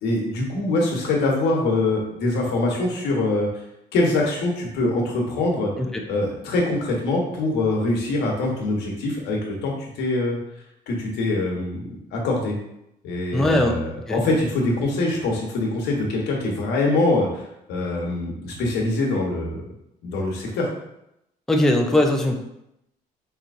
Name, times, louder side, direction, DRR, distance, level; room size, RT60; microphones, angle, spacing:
voice 1, 0.0-3.5 3.9-5.7 6.1-10.4 10.9-11.8 12.1-12.5 13.0-19.6 20.0-20.7, left 2 dB, 85° left, -1 dB, 1.1 m, -24 dB
voice 2, 13.3-13.7 14.1-14.2 21.5-22.4, left 1 dB, ahead, 2 dB, 0.4 m, -20 dB
5.0 x 2.9 x 2.5 m, 0.82 s
cardioid pair, 110°, 17 cm